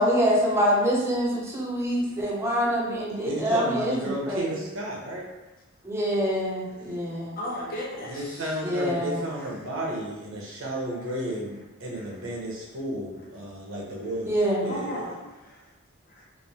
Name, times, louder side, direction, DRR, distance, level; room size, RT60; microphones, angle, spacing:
voice 1, 0.0-4.5 5.8-7.4 8.6-9.2 14.2-14.7, equal, 15° right, -4 dB, 0.5 m, -25 dB
voice 2, 3.2-5.3 6.8-7.0 8.1-14.3 14.6-14.9, right 1 dB, 80° right, -3 dB, 0.7 m, -33 dB
voice 3, 7.3-8.6 11.9-12.2 13.4-13.5 14.6-15.7 16.1-16.2, equal, 45° left, -3 dB, 0.6 m, -36 dB
3.1 x 2.0 x 2.7 m, 1.0 s
head